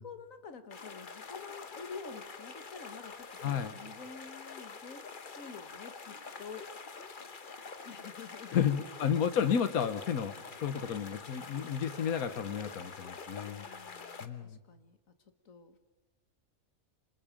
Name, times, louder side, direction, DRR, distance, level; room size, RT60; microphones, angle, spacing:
voice 1, 0.0-6.7 7.9-8.8 13.3-15.0 15.5-15.8, left 5 dB, 70° left, 9 dB, 1.9 m, -49 dB
sound 1, 0.7-14.3, left 5 dB, 40° left, 1.2 m, -46 dB
voice 2, 3.4-3.7 8.5-10.3 10.6-13.7 14.2-14.6, left 8 dB, 90° left, 11 dB, 1.5 m, -31 dB
28.0 x 26.0 x 5.2 m, 1.0 s
omnidirectional pair, 1.5 m